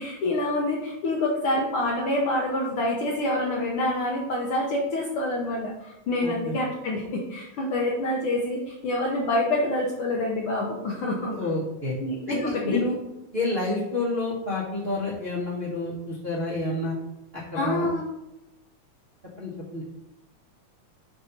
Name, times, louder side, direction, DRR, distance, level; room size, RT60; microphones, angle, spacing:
voice 1, 0.0-11.5 12.0-12.8 17.5-18.1, left 1 dB, 75° left, -2 dB, 1.2 m, -27 dB
voice 2, 6.2-6.5 11.3-11.9 12.3-12.9 13.3-16.9 17.5-17.8 19.4-19.9, left 2 dB, 85° right, -9 dB, 0.5 m, -29 dB
6.5 x 2.7 x 5.7 m, 0.93 s
omnidirectional pair, 3.4 m